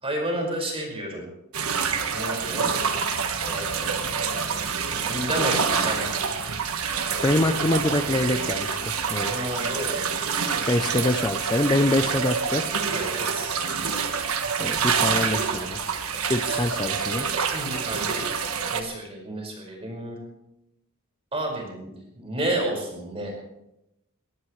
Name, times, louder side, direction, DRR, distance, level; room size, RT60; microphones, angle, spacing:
voice 1, 0.0-1.2 2.1-2.7 3.4-4.4 4.9-6.1 9.3-10.0 12.9-13.5 15.8-15.9 16.5-16.6 17.5-20.2 21.3-23.3, right 1 dB, 25° right, 1 dB, 5.6 m, -31 dB
sound 1, 1.5-18.8, right 6 dB, 90° right, 1.5 m, -27 dB
voice 2, 7.2-9.3 10.7-12.7 14.6-15.9 16.3-17.3, left 1 dB, 20° left, 8 dB, 0.6 m, -25 dB
22.5 x 17.5 x 3.3 m, 0.85 s
head